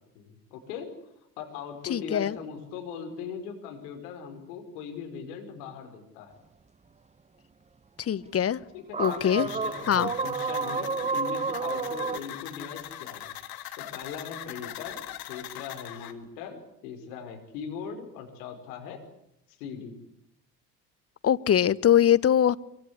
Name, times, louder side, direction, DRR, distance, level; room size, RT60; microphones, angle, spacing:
voice 1, 0.2-0.9 1.4-6.4 8.7-13.4 13.8-15.0 15.3-19.0 19.5-20.0, left 7 dB, 65° left, 5.2 m, -40 dB
voice 2, 1.9-2.4 8.0-8.6 9.0-9.5 9.9-10.1 21.2-22.6, left 10 dB, 30° left, 1.1 m, -22 dB
sound 1, 8.9-12.2, right 5 dB, 15° right, 1.0 m, -30 dB
sound 2, 9.0-16.1, left 12 dB, 50° left, 2.3 m, -41 dB
24.0 x 24.0 x 8.2 m
figure-of-eight pair, 55°, 47 cm